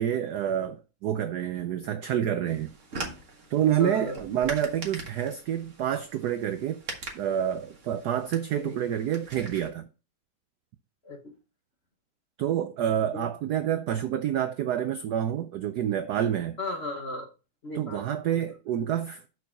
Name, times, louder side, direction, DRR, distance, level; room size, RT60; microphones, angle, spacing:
voice 1, 0.0-2.7 3.5-6.8 7.1-9.9 12.4-16.6 17.8-19.3, right 10 dB, 75° right, 0.9 m, -28 dB
sound 1, 2.5-9.7, right 3 dB, 40° right, 1.7 m, -42 dB
voice 2, 3.8-4.2 8.6-8.8 11.0-11.4 13.1-13.3 16.6-17.3 17.6-18.6, left 2 dB, 40° left, 1.1 m, -36 dB
6.2 x 4.6 x 5.7 m
omnidirectional pair, 2.3 m